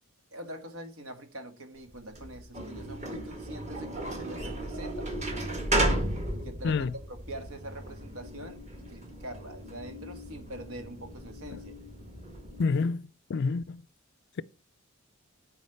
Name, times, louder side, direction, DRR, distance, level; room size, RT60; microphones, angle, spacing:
voice 1, 0.3-5.5 6.3-11.7, right 1 dB, 80° right, 1.7 m, -44 dB
sound 1, 1.9-12.6, right 1 dB, 30° right, 1.6 m, -35 dB
voice 2, 12.6-13.8, left 4 dB, 50° left, 0.4 m, -28 dB
8.4 x 4.7 x 5.7 m
head